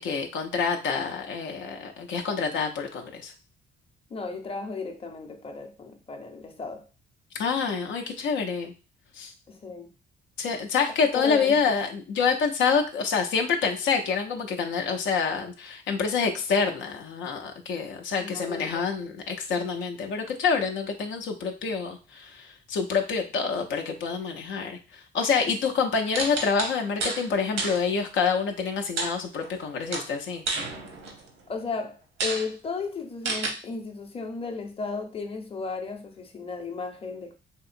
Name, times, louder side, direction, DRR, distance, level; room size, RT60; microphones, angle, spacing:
voice 1, 0.0-3.3 7.4-8.7 9.1-9.3 10.4-30.4, left 5 dB, 75° left, 0.5 m, -27 dB
voice 2, 4.1-6.8 9.5-9.9 11.1-11.8 18.2-18.9 31.5-37.3, left 4 dB, 30° left, 0.7 m, -35 dB
sound 1, 26.1-27.2 27.6-27.8 29.0-29.6 29.9-31.3 31.8-31.9 32.2-32.5 33.3-33.5, right 3 dB, 85° right, 0.9 m, -30 dB
3.5 x 2.8 x 2.5 m
cardioid pair, 90°, 20 cm